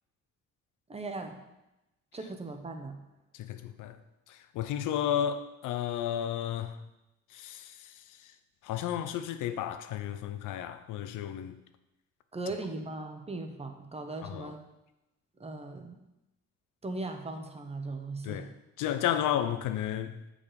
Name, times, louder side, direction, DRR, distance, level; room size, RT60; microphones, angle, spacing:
voice 1, 0.9-1.4 2.1-3.0 12.3-14.6 15.4-16.0 16.8-18.5, right 2 dB, 20° right, 1.0 m, -38 dB
voice 2, 3.3-4.0 4.3-6.8 7.3-8.3 8.6-11.6 14.2-14.5 18.2-18.5 18.8-20.2, left 10 dB, 85° left, 0.6 m, -33 dB
7.1 x 5.0 x 5.2 m
cardioid pair, 90°, 30 cm